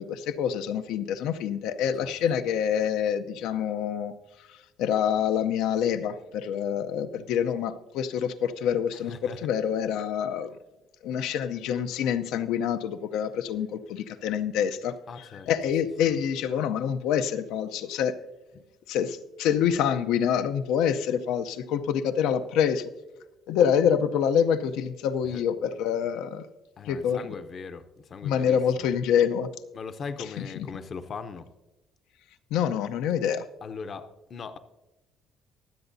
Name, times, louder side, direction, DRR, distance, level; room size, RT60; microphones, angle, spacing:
voice 1, 0.0-10.5 11.0-18.1 18.9-22.9 23.5-26.4 26.8-27.4 28.2-29.5 30.4-30.7 32.5-33.5, left 8 dB, 85° left, 10 dB, 0.6 m, -26 dB
voice 2, 9.1-9.4 15.1-15.5 18.5-18.6 25.3-25.4 26.8-28.9 29.7-31.5 33.6-34.6, left 5 dB, 35° left, 10 dB, 0.6 m, -39 dB
23.5 x 8.0 x 2.7 m, 1.1 s
cardioid pair, 145°, 0 cm